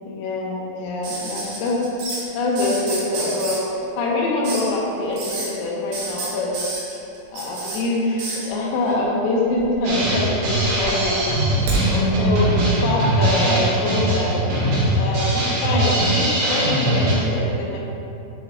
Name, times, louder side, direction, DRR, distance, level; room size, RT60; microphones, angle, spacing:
voice 1, 0.0-1.8 2.4-3.6 4.0-6.5 7.3-11.2 11.9-14.3 14.9-17.8, left 2 dB, 85° left, -4 dB, 3.6 m, -24 dB
sound 1, 1.0-2.2 2.5-3.6 4.4-4.7 5.1-5.5 5.9-7.8 8.2-8.5 9.5-10.1 10.4-11.8 13.2-13.3, right 3 dB, 85° right, 2.1 m, -29 dB
Drum kit, 9.8-17.1, right 1 dB, 65° right, 3.3 m, -21 dB
9.8 x 3.3 x 3.7 m, 2.8 s
omnidirectional pair, 5.7 m